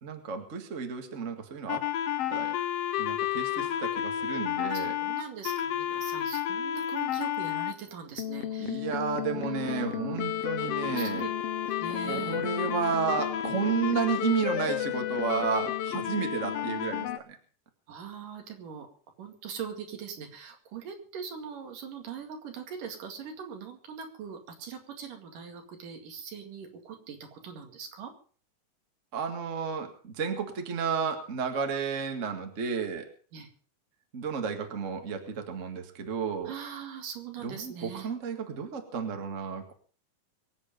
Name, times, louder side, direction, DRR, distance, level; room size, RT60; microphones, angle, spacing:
voice 1, 0.0-1.9 2.3-2.6 3.0-5.0 8.6-11.3 11.9-17.4 29.1-33.1 34.1-36.5 37.4-39.7, right 6 dB, 30° right, 5 dB, 1.7 m, -32 dB
sound 1, 1.7-7.7 8.2-17.2, left 10 dB, 70° left, 1.5 m, -31 dB
voice 2, 3.6-4.0 4.6-8.9 9.3-10.3 10.8-11.3 11.8-12.4 17.9-18.9 19.2-28.1 33.3-33.5 36.5-38.1, right 7 dB, 80° right, 4 dB, 3.8 m, -41 dB
24.0 x 8.4 x 5.2 m, 0.43 s
omnidirectional pair, 3.8 m